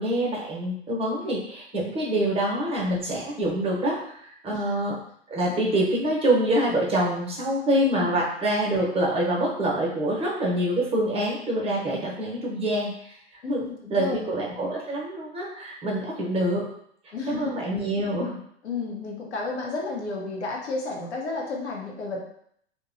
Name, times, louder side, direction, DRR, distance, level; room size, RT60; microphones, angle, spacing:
voice 1, 0.0-5.0 5.3-13.1 13.5-16.7 17.3-18.4, right 1 dB, 15° right, -3 dB, 0.8 m, -26 dB
voice 2, 7.7-8.2 13.4-14.2 17.1-17.5 18.6-22.2, left 4 dB, 80° left, -1 dB, 0.8 m, -32 dB
2.9 x 2.2 x 2.6 m, 0.67 s
hypercardioid pair, 95°, 34 cm